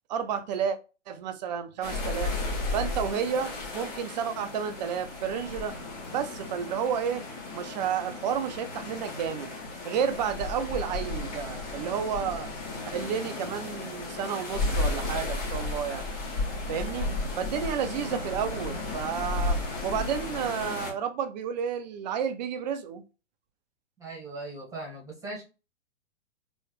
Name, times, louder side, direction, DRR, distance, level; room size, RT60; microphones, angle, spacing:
voice 1, 0.1-0.8 1.1-2.4 2.7-5.8 6.1-7.2 7.5-9.5 9.8-12.5 12.8-16.1 16.7-17.1 17.4-19.6 19.8-23.0, right 7 dB, 35° right, 0.6 m, -31 dB
sound 1, 1.8-20.9, left 2 dB, 40° left, 2.5 m, -34 dB
voice 2, 24.0-25.4, right 2 dB, 10° right, 1.6 m, -39 dB
4.4 x 3.1 x 3.1 m
figure-of-eight pair, 120°, 37 cm